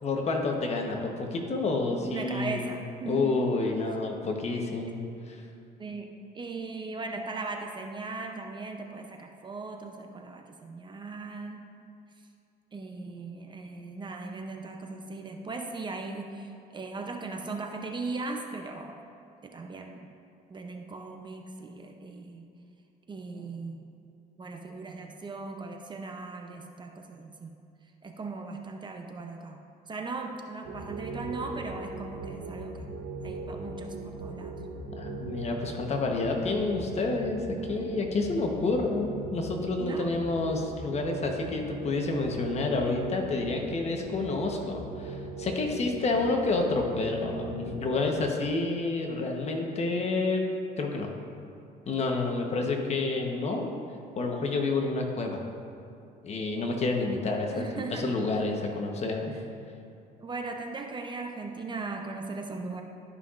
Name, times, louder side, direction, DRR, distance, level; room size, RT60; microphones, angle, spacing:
voice 1, 0.0-2.8 3.1-5.0 5.3-5.4 35.0-50.5 50.8-51.1 51.9-53.7 54.2-55.5 56.2-57.6 57.9-59.3, left 3 dB, 40° left, 2 dB, 1.0 m, -29 dB
voice 2, 1.9-3.4 5.8-6.1 6.3-11.6 12.7-19.0 19.4-20.1 20.5-22.4 23.1-23.9 24.4-27.5 28.0-32.9 33.2-34.6 37.5-38.0 39.8-40.1 57.5-58.1 60.2-62.8, right 3 dB, 25° right, 3 dB, 0.6 m, -38 dB
sound 1, 30.6-48.3, right 3 dB, 80° right, 0.9 m, -40 dB
12.5 x 5.6 x 2.5 m, 2.5 s
cardioid pair, 110°, 17 cm